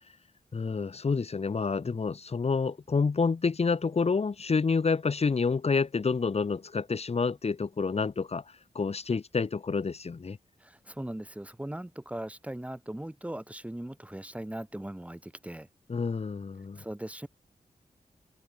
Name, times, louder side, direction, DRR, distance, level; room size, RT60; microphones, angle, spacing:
voice 1, 0.5-10.4 15.9-16.8, left 4 dB, 45° left, 0.9 m, -28 dB
voice 2, 10.6-15.7 16.8-17.3, right 1 dB, 10° right, 1.0 m, -39 dB
open air
cardioid pair, 50°, 15 cm